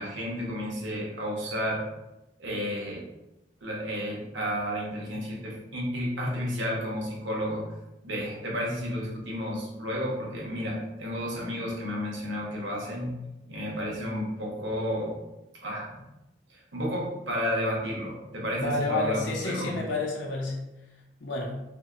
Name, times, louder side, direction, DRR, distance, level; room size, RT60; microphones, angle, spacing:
voice 1, 0.0-1.8 2.4-3.0 3.6-7.6 8.0-13.1 13.5-15.1 15.6-16.0 16.5-19.7, equal, 85° right, -3 dB, 0.8 m, -32 dB
voice 2, 18.5-20.6 21.2-21.6, left 2 dB, 85° left, -1 dB, 0.6 m, -30 dB
2.7 x 2.1 x 2.3 m, 0.96 s
head